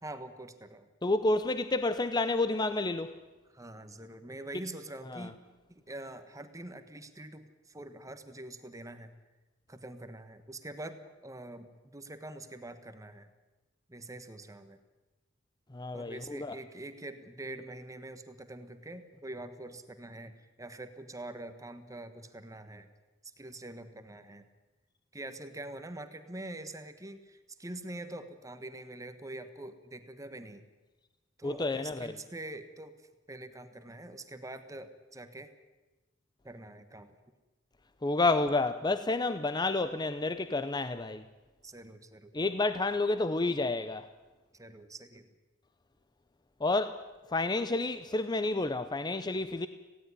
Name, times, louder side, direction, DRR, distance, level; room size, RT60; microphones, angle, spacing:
voice 1, 0.0-0.9 3.5-5.3 5.7-9.1 9.7-13.3 13.9-14.8 15.9-22.9 23.2-24.4 25.1-30.7 31.4-33.0 33.3-35.5 36.4-37.1 41.6-42.3 44.5-45.3, right 1 dB, 15° right, 1.3 m, -45 dB
voice 2, 1.0-3.1 5.1-5.3 15.7-16.6 31.4-32.1 38.0-41.2 42.3-44.1 46.6-47.0 47.3-49.7, left 2 dB, 20° left, 0.6 m, -30 dB
18.0 x 16.5 x 9.7 m
head